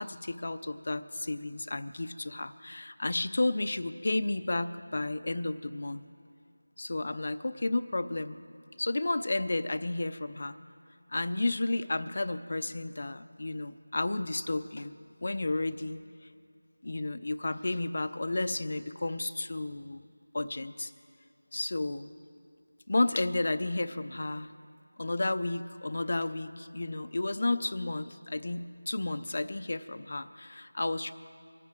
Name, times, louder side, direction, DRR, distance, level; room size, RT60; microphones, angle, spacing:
voice 1, 0.0-6.0 6.8-8.5 8.8-10.6 11.1-14.9 15.2-16.0 16.8-20.1 20.3-20.9 21.5-22.1 22.9-24.5 25.0-31.1, left 2 dB, 40° left, 11 dB, 0.5 m, -32 dB
24.5 x 9.6 x 4.5 m, 2.4 s
figure-of-eight pair, 175°, 0 cm